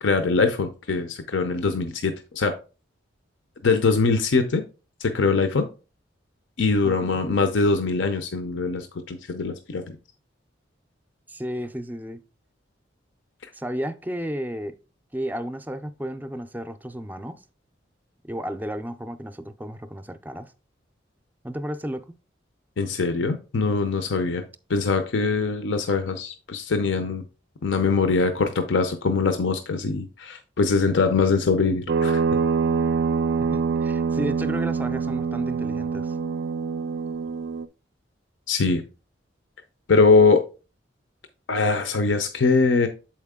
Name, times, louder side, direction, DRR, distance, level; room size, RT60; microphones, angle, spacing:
voice 1, 0.0-2.5 3.6-4.6 5.0-5.7 6.6-10.0 22.8-24.4 24.7-27.2 27.6-32.2 38.5-38.8 39.9-40.5 41.5-42.9, left 4 dB, 80° left, 0.6 m, -22 dB
voice 2, 6.8-7.2 11.3-12.2 13.5-14.8 15.1-17.4 18.2-20.5 21.4-22.1 33.4-36.2, equal, 10° right, 0.4 m, -33 dB
sound 1, 31.9-37.6, right 5 dB, 70° right, 0.4 m, -25 dB
7.2 x 4.5 x 3.6 m
head